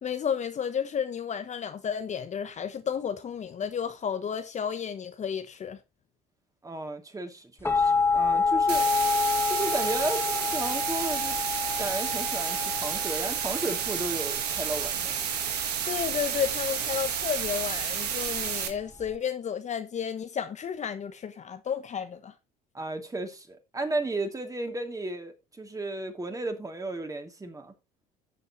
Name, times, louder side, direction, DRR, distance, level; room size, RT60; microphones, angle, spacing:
voice 1, 0.0-5.8 15.9-22.3, left 7 dB, 35° left, 1.1 m, -32 dB
voice 2, 6.6-8.9 9.5-11.4 11.8-15.3 22.7-27.7, right 2 dB, 15° right, 2.9 m, -34 dB
sound 1, 7.6-19.2, left 4 dB, 10° left, 1.4 m, -29 dB
sound 2, 8.7-18.7, right 8 dB, 90° right, 1.6 m, -31 dB
15.0 x 6.7 x 3.1 m
hypercardioid pair, 70°, 20 cm